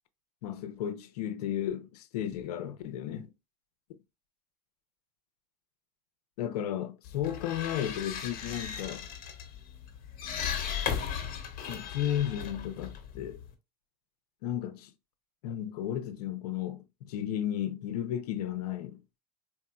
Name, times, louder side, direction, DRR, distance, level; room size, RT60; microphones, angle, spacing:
voice 1, 0.4-3.3 6.4-9.0 11.7-13.4 14.4-14.9 15.4-19.0, left 10 dB, 80° left, 0.7 m, -34 dB
sound 1, 7.0-13.5, left 8 dB, 45° left, 1.3 m, -37 dB
4.4 x 2.8 x 2.3 m
supercardioid pair, 110°, 20 cm